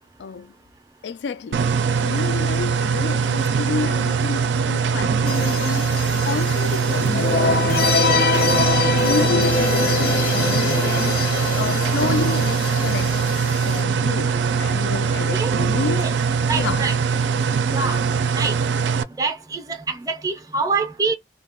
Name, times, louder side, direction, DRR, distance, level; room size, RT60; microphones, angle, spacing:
voice 1, 0.2-0.5 1.0-11.3 11.6-16.2 16.5-16.8, left 5 dB, 85° left, 0.3 m, -30 dB
sound 1, 1.5-19.0, right 6 dB, 85° right, 0.4 m, -22 dB
sound 2, 5.3-13.8, left 4 dB, 55° left, 0.7 m, -24 dB
voice 2, 8.7-9.3 15.3-16.2 16.5-17.0 17.7-18.0 18.3-18.6 19.2-21.2, right 4 dB, 20° right, 0.5 m, -27 dB
2.3 x 2.2 x 3.4 m
head